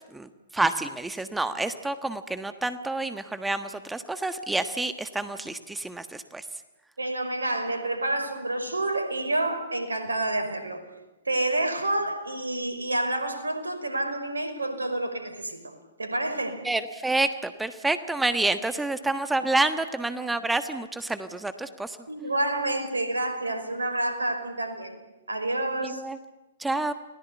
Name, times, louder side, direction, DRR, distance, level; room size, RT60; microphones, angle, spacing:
voice 1, 0.1-6.4 16.6-22.0 25.8-26.2 26.6-26.9, right 2 dB, 5° right, 10 dB, 1.4 m, -28 dB
voice 2, 7.0-10.8 11.3-15.7 16.0-16.6 22.1-25.0 25.3-26.0, right 2 dB, 85° right, 7 dB, 5.4 m, -28 dB
30.0 x 20.5 x 8.4 m, 1.0 s
figure-of-eight pair, 115°, 0 cm